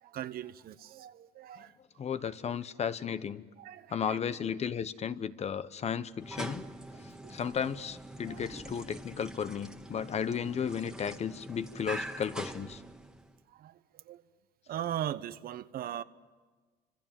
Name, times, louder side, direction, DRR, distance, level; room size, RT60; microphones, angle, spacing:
voice 1, 0.0-1.7 3.6-4.2 6.9-7.4 8.2-8.5 13.5-14.2 14.7-16.0, right 11 dB, 60° right, 1.0 m, -40 dB
voice 2, 2.0-3.4 3.9-6.6 7.3-12.8, left 7 dB, 40° left, 1.0 m, -34 dB
sound 1, 6.2-13.4, right 1 dB, 5° right, 1.5 m, -44 dB
29.0 x 26.0 x 7.6 m
cardioid pair, 110°, 17 cm